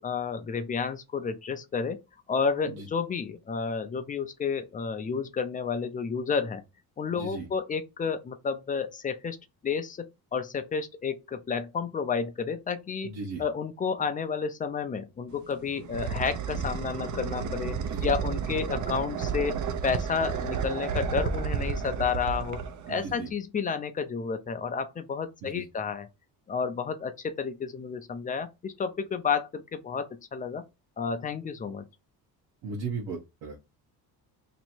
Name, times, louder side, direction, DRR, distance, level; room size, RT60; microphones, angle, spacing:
voice 1, 0.0-2.0 2.3-6.6 7.0-9.4 9.6-10.0 10.3-13.1 13.4-19.6 19.8-22.6 22.9-26.1 26.5-30.6 31.0-31.8, left 6 dB, 20° left, 0.3 m, -31 dB
voice 2, 7.1-7.5 13.0-13.4 17.9-18.1 22.9-23.3 25.4-25.6 32.6-33.6, right 4 dB, 85° right, 1.2 m, -36 dB
sound 1, 15.3-23.3, right 6 dB, 50° right, 0.6 m, -32 dB
3.0 x 2.7 x 4.3 m
cardioid pair, 165°, 38 cm